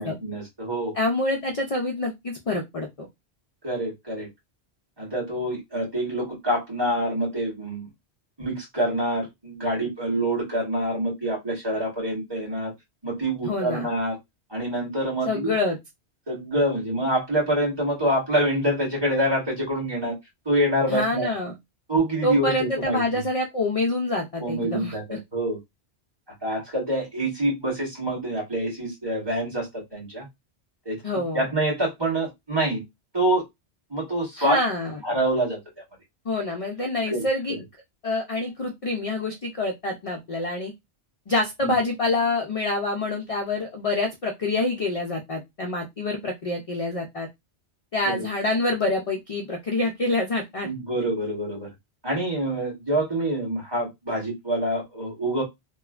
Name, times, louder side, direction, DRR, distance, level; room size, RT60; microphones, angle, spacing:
voice 1, 0.0-0.9 3.6-4.3 5.0-7.9 8.4-12.7 13.0-14.2 14.5-15.5 16.3-20.1 20.4-21.3 21.9-23.0 24.4-25.6 26.4-30.2 30.8-32.8 33.1-33.4 33.9-34.6 35.0-35.6 37.1-37.3 41.6-41.7 48.1-48.2 50.6-51.7 52.0-55.4, right 1 dB, 20° right, -5 dB, 1.4 m, -26 dB
voice 2, 1.0-3.1 13.4-13.9 15.3-15.8 20.9-21.5 22.2-25.2 31.0-31.4 34.4-35.0 36.3-37.6 38.0-40.7 41.3-47.3 47.9-50.7, left 2 dB, 55° left, 2 dB, 0.4 m, -26 dB
3.1 x 2.1 x 2.3 m, 0.18 s
omnidirectional pair, 1.2 m